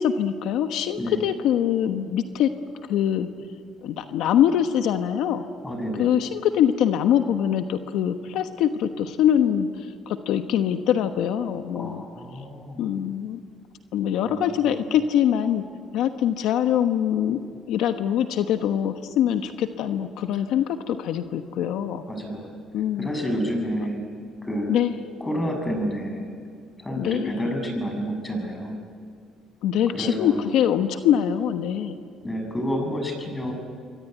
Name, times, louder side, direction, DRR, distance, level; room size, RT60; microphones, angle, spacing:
voice 1, 0.0-2.5 2.9-3.3 3.8-5.4 6.0-12.0 12.8-13.4 13.9-15.6 15.9-17.4 17.7-22.0 22.7-23.1 24.7-25.0 27.0-27.3 29.6-32.0, left 9 dB, 80° left, 7 dB, 1.2 m, -23 dB
voice 2, 5.6-6.1 11.8-12.8 14.2-14.9 22.1-22.5 23.0-24.0 24.4-24.7 25.2-26.3 26.8-28.8 29.9-30.5 32.2-33.5, equal, 15° left, 4 dB, 7.5 m, -29 dB
27.0 x 23.0 x 9.3 m, 2.2 s
cardioid pair, 105°, 0 cm